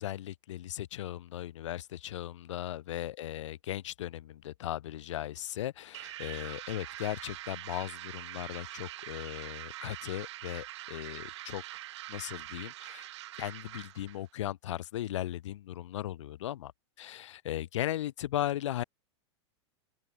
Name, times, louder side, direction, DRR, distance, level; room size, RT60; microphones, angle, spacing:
voice 1, 0.0-11.6 12.1-13.1 13.4-16.7 17.0-18.8, left 13 dB, 85° left, 1.1 m, -37 dB
sound 1, 5.9-14.2, right 15 dB, 70° right, 1.8 m, -44 dB
open air
supercardioid pair, 155°, 15 cm